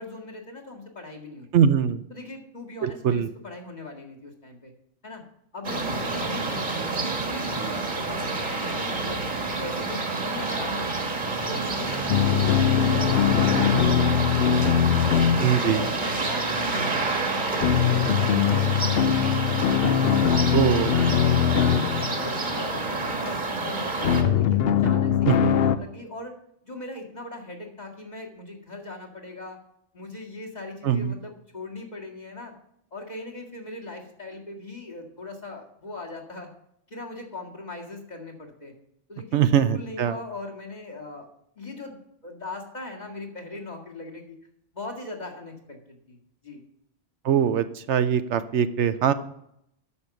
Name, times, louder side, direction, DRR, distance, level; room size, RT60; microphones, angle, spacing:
voice 1, 0.0-1.7 2.1-4.7 5.0-5.2 5.5-9.3 9.6-10.9 11.4-15.1 15.5-19.3 19.7-21.9 22.2-26.3 26.6-29.6 29.9-32.5 32.9-36.5 36.9-38.7 39.1-41.3 41.6-44.4 44.7-46.2 46.4-46.6, left 2 dB, 35° left, 0 dB, 2.0 m, -39 dB
voice 2, 1.5-2.0 2.8-3.3 15.4-15.9 20.5-20.9 25.3-25.6 30.8-31.1 39.3-40.2 47.2-49.1, right 8 dB, 75° right, 12 dB, 0.9 m, -22 dB
sound 1, 5.6-24.2, right 3 dB, 40° right, 1.5 m, -28 dB
sound 2, 12.1-16.5 17.6-22.5 24.0-25.8, left 9 dB, 60° left, 0.8 m, -22 dB
9.7 x 6.6 x 7.0 m, 0.75 s
omnidirectional pair, 1.2 m